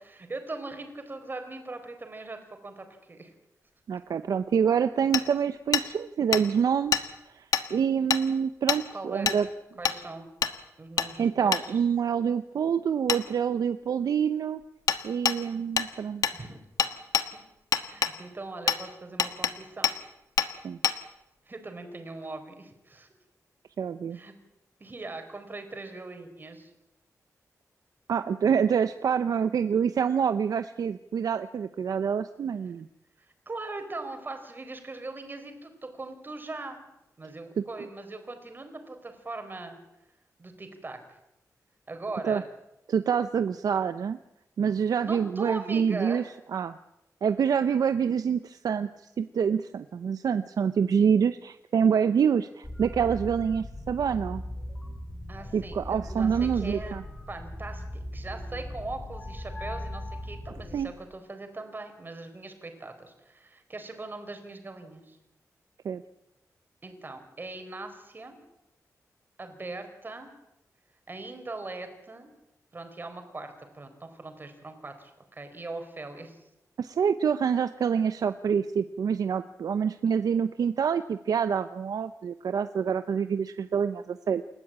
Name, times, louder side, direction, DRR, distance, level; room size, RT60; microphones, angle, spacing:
voice 1, 0.0-2.4 2.6-3.3 8.9-9.3 9.8-10.3 10.8-11.8 16.3-17.0 17.8-19.9 21.5-23.1 24.1-24.3 24.8-26.7 33.5-36.8 37.2-39.8 40.4-41.0 41.9-42.4 45.0-46.3 55.3-56.9 57.3-57.8 58.1-65.2 66.8-68.4 69.4-70.3 71.1-72.3 72.7-76.4, right 2 dB, 35° right, 6 dB, 4.2 m, -40 dB
voice 2, 3.9-7.4 7.7-9.5 11.2-14.6 15.0-16.2 20.6-20.8 23.8-24.2 28.1-32.9 42.2-42.4 42.9-44.2 44.6-46.2 46.5-46.8 47.2-54.4 55.5-57.0 60.7-60.9 65.8-66.0 76.8-84.4, right 7 dB, 85° right, 10 dB, 0.7 m, -26 dB
Hammer, 5.1-5.2 5.7-5.9 6.3-6.4 6.9-7.0 7.5-7.7 8.1-8.2 8.7-8.8 9.3-9.4 9.9-10.0 10.4-10.5 11.0-11.1 11.5-11.6 13.1-13.2 14.9-15.0 15.3-15.4 15.8-15.9 16.2-16.4 16.8-17.3 17.7-18.1 18.7-18.8 19.2-19.5 19.8-20.0 20.4-20.5 20.8-21.0, left 7 dB, 80° left, 1.4 m, -25 dB
sound 1, 52.6-60.8, left 1 dB, 10° left, 3.3 m, -38 dB
28.5 x 13.5 x 8.7 m, 0.88 s
wide cardioid pair, 120°, 6 cm